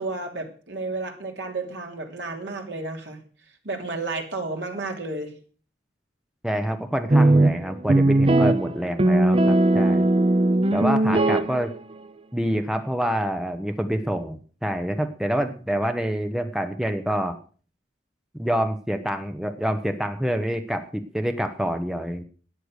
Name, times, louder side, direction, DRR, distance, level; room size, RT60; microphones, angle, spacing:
voice 1, 0.0-3.2 3.6-5.3, right 3 dB, 70° right, 3 dB, 3.0 m, -32 dB
voice 2, 6.4-10.1 10.7-11.7 12.3-17.4 18.4-22.2, equal, 5° right, 7 dB, 0.9 m, -27 dB
sound 1, 7.1-11.9, right 2 dB, 30° right, 0.5 m, -19 dB
13.5 x 9.8 x 6.5 m, 0.41 s
head